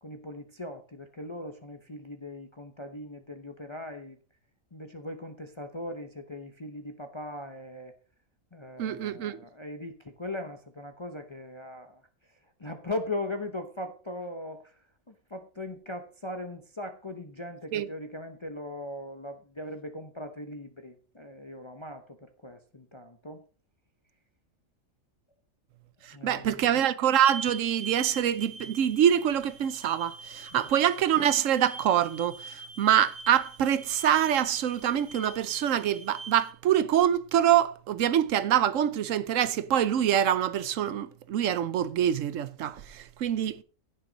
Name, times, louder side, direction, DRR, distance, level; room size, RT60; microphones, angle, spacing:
voice 1, 0.0-4.2 4.7-7.9 8.5-12.0 12.6-23.4 26.1-26.6 30.5-30.7, left 1 dB, 25° left, 0.8 m, -39 dB
voice 2, 8.8-9.4 17.7-17.9 26.0-43.6, right 10 dB, 70° right, 1.1 m, -25 dB
sound 1, 27.2-36.5, right 3 dB, 45° right, 1.3 m, -44 dB
15.5 x 6.2 x 4.0 m
omnidirectional pair, 1.4 m